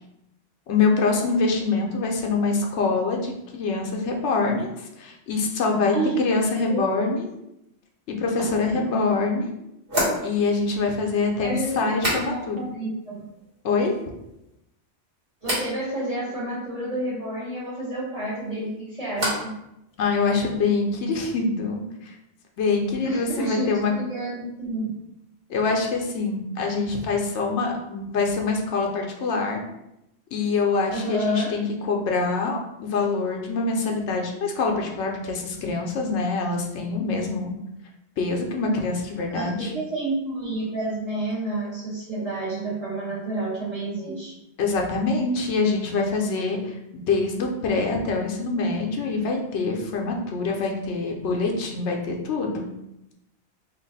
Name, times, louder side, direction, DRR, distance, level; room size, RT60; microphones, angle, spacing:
voice 1, 0.7-7.3 8.1-9.5 10.2-12.6 13.6-13.9 20.0-22.1 22.6-23.9 25.5-29.6 30.3-37.6 38.2-39.7 44.6-52.7, left 4 dB, 85° left, 0 dB, 0.9 m, -25 dB
sound 1, 8.6-8.7 9.9-12.7 13.0-13.6 13.9-14.5 15.4-15.7 18.2-19.6 19.9-20.5, equal, 55° right, 1.5 m, -31 dB
voice 2, 11.4-11.7 12.2-13.2 15.4-19.4 23.0-24.9 30.9-31.5 39.3-44.3, right 2 dB, 35° right, -9 dB, 1.5 m, -29 dB
2.9 x 2.5 x 3.9 m, 0.86 s
omnidirectional pair, 1.1 m